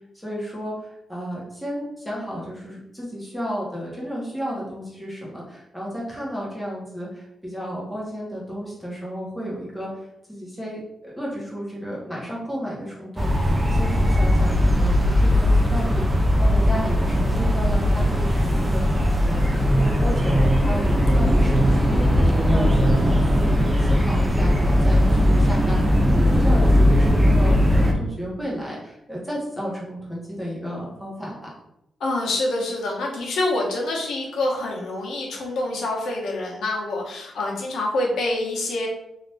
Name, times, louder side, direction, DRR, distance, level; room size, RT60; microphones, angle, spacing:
voice 1, 0.2-22.9 23.2-31.5, equal, ahead, -5 dB, 1.0 m, -33 dB
sound 1, 13.2-27.9, equal, 15° right, 0.4 m, -19 dB
voice 2, 14.5-15.2 32.0-38.9, left 2 dB, 90° left, -2 dB, 0.9 m, -27 dB
2.7 x 2.5 x 3.3 m, 0.83 s
wide cardioid pair, 140°, 0 cm